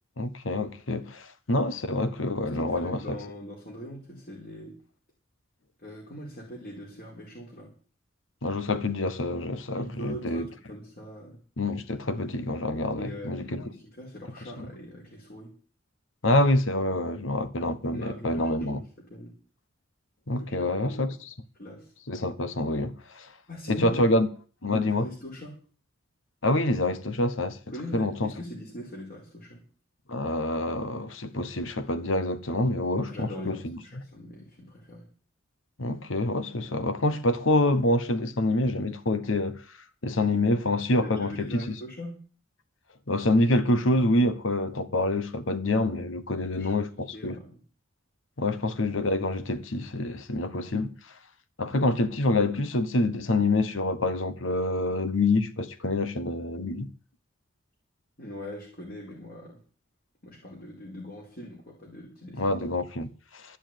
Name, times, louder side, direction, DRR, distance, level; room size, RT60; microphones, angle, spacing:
voice 1, 0.2-3.2 8.4-10.5 11.6-13.6 14.6-14.7 16.2-18.8 20.3-21.3 22.1-23.3 23.7-24.3 24.6-25.1 26.4-27.6 27.9-28.3 30.1-33.8 35.8-39.6 40.0-41.7 43.1-47.4 48.4-50.9 51.6-56.9 62.4-63.6, left 2 dB, 75° left, 1.1 m, -26 dB
voice 2, 2.4-4.8 5.8-7.7 9.7-11.4 13.0-15.5 17.9-19.3 20.4-21.2 21.6-21.9 23.5-24.2 24.8-25.5 27.7-29.6 33.1-35.1 40.9-42.2 46.6-46.8 47.1-47.6 58.2-59.6 60.2-62.6, equal, 45° left, 4.7 m, -41 dB
12.5 x 7.1 x 9.1 m
head